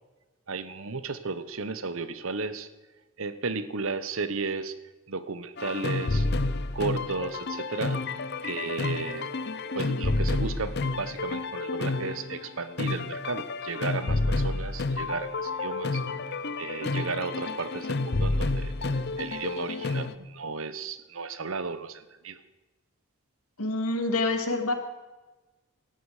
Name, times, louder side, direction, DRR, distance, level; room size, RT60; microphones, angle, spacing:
voice 1, 0.5-2.7 3.2-4.8 5.1-6.3 6.7-8.0 8.4-9.3 9.7-16.0 16.6-18.7 19.2-22.4, right 4 dB, 70° right, 13 dB, 1.0 m, -34 dB
sound 1, 5.6-20.1, left 3 dB, 50° left, 0.7 m, -30 dB
voice 2, 23.6-24.7, left 2 dB, 90° left, 6 dB, 2.2 m, -27 dB
17.5 x 13.5 x 4.9 m, 1.2 s
head